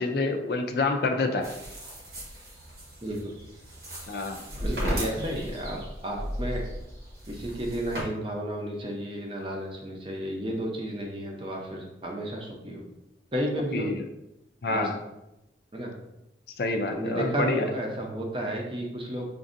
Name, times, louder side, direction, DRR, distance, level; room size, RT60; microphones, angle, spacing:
voice 1, 0.0-1.5 4.1-4.4 13.7-14.0 14.6-15.0 16.6-17.7, left 3 dB, 55° left, 4 dB, 0.4 m, -27 dB
sound 1, 1.4-8.0, equal, 65° right, 1.0 m, -35 dB
voice 2, 4.6-6.6 7.3-12.8 13.3-13.9 14.7-14.9 15.7-15.9 16.9-19.3, right 1 dB, 30° right, 0 dB, 0.6 m, -32 dB
5.1 x 2.6 x 2.5 m, 0.90 s
head